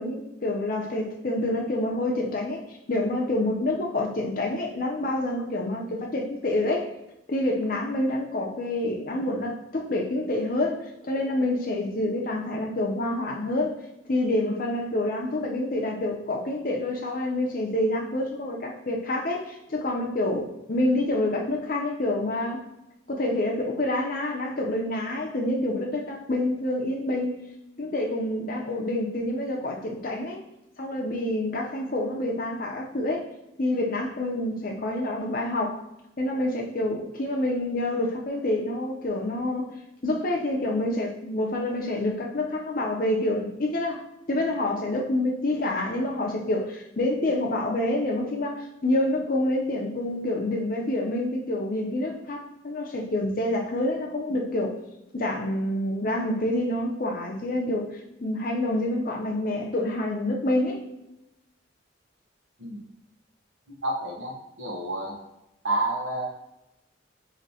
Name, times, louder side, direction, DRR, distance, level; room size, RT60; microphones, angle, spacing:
voice 1, 0.0-2.6 2.9-6.9 7.3-13.8 14.1-22.6 23.1-27.5 27.8-30.4 30.8-33.2 33.6-35.8 36.2-39.7 40.0-54.8 55.1-60.9, left 1 dB, 45° left, 0 dB, 0.7 m, -27 dB
voice 2, 63.8-65.2 65.6-66.3, right 2 dB, 85° right, 0 dB, 1.0 m, -29 dB
5.2 x 2.9 x 2.8 m, 0.89 s
head